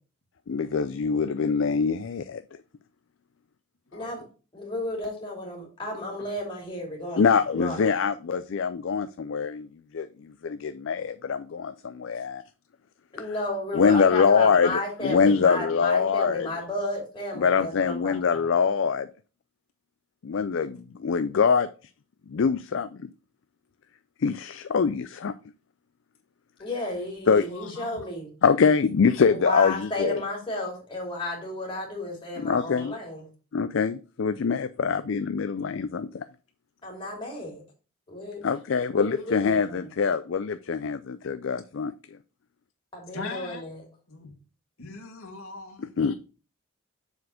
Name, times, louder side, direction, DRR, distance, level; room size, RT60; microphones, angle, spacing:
voice 1, 0.5-2.4 7.2-9.7 9.9-10.1 10.4-12.4 13.7-16.5 17.4-19.1 20.2-21.7 22.3-23.1 24.2-25.3 27.3-27.9 28.4-30.2 32.4-32.9 33.5-36.2 38.4-41.9 46.0-46.1, left 5 dB, 55° left, 0.4 m, -24 dB
voice 2, 3.9-4.2 4.5-7.8 13.1-18.5 26.6-28.3 29.3-33.2 36.8-37.6 38.1-38.4 38.9-39.9 42.9-43.8, left 1 dB, 20° left, 2.9 m, -33 dB
voice 3, 43.1-43.6 44.1-44.3 44.8-45.9, left 3 dB, 75° left, 2.1 m, -39 dB
7.0 x 4.2 x 6.3 m
head